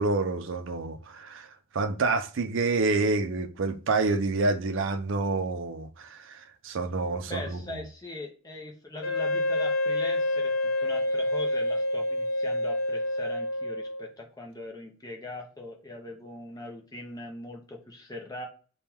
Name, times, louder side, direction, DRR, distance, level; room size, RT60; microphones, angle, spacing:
voice 1, 0.0-1.5 1.7-7.8, right 3 dB, 65° right, 0.5 m, -28 dB
voice 2, 7.2-18.5, left 2 dB, 20° left, 0.6 m, -41 dB
Wind instrument woodwind instrument, 9.0-14.1, left 1 dB, 80° left, 0.6 m, -28 dB
3.5 x 2.3 x 4.3 m
head